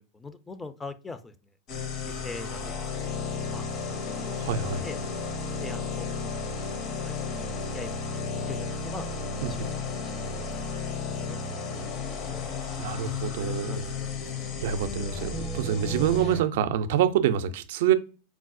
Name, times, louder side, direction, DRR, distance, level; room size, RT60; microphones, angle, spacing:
voice 1, 0.0-1.5 2.0-2.7 3.2-5.0 5.6-6.8 7.0-8.0 8.4-9.1 9.3-11.8 12.3-12.7 13.0-14.6, left 3 dB, 15° left, 0.3 m, -44 dB
sound 1, 1.7-16.4, left 4 dB, 45° left, 0.6 m, -33 dB
voice 2, 4.2-4.9 9.4-9.5 12.8-13.9 14.6-17.9, right 9 dB, 70° right, 0.3 m, -26 dB
4.5 x 2.0 x 2.4 m
hypercardioid pair, 120°, 0 cm